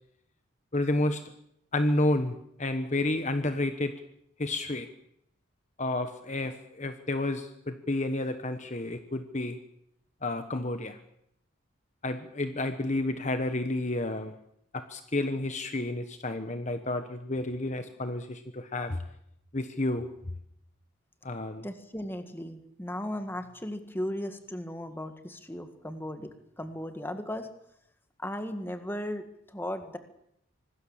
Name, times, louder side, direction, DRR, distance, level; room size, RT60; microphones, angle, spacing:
voice 1, 0.7-1.2 1.7-4.0 4.4-4.9 5.8-9.6 10.2-11.0 12.0-14.3 14.7-19.0 19.5-20.1 21.2-21.7, left 2 dB, 35° left, 8 dB, 1.2 m, -30 dB
voice 2, 21.6-27.5 28.2-30.0, left 1 dB, 10° left, 8 dB, 1.9 m, -36 dB
25.5 x 19.5 x 7.4 m, 0.74 s
head